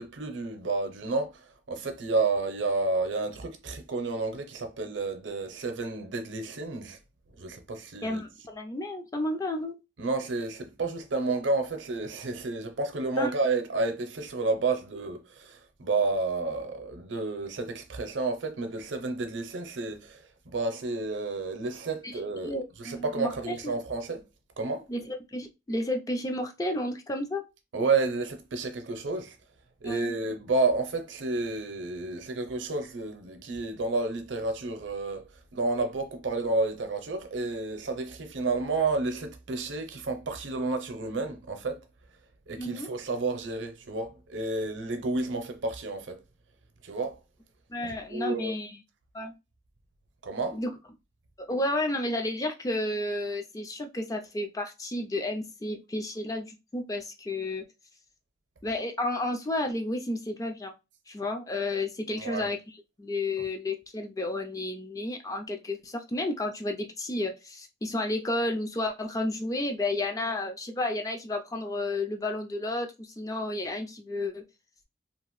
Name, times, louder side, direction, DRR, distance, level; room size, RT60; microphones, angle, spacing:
voice 1, 0.0-7.0 7.4-8.2 10.0-24.2 24.6-24.9 27.7-29.4 29.8-41.8 42.5-46.2 46.8-47.2 47.8-48.5 50.2-50.6 62.1-62.5 63.4-63.5, right 3 dB, 80° right, 0.6 m, -31 dB
voice 2, 8.0-9.8 13.2-13.3 22.0-23.5 24.9-27.4 29.8-30.1 42.6-42.9 47.7-48.8 49.1-49.3 50.5-50.7 51.4-57.6 58.6-60.7 61.1-62.6 63.0-74.4, left 1 dB, 20° left, 0.3 m, -32 dB
2.8 x 2.4 x 3.0 m
head